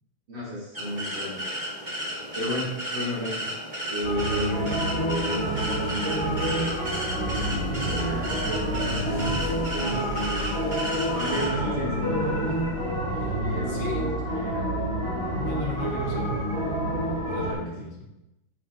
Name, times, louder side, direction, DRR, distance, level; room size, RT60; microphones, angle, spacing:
voice 1, 0.3-1.4 2.3-3.4 3.9-4.7 5.0-6.8 7.9-10.8 11.1-12.5 13.4-13.8 14.3-14.7 17.4-17.9, equal, 75° right, -8 dB, 3.7 m, -33 dB
sound 1, 0.7-11.5, equal, 25° right, 2.2 m, -33 dB
Like an old zelda melody, 4.0-17.5, right 1 dB, 45° left, 2.7 m, -28 dB
voice 2, 5.4-6.0 7.2-8.0 9.9-10.2 11.1-12.0 13.1-13.4 13.7-14.1 15.3-16.4 17.3-18.0, left 3 dB, 65° left, -2 dB, 1.8 m, -38 dB
sound 2, 7.3-13.3, left 2 dB, 50° right, 0.3 m, -39 dB
9.5 x 5.5 x 2.7 m, 0.93 s
omnidirectional pair, 2.1 m